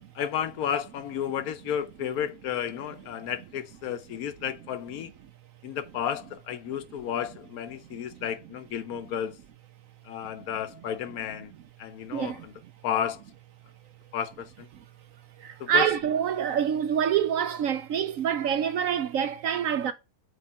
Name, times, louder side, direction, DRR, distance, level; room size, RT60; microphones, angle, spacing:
voice 1, 0.0-5.1 5.6-9.4 10.0-11.5 11.8-12.5 12.8-13.2 14.1-14.7 15.6-15.9, left 9 dB, 70° left, 1.1 m, -32 dB
voice 2, 7.9-8.2 12.1-12.5 15.4-19.9, right 8 dB, 70° right, 0.9 m, -26 dB
7.9 x 3.2 x 4.1 m
omnidirectional pair, 1.7 m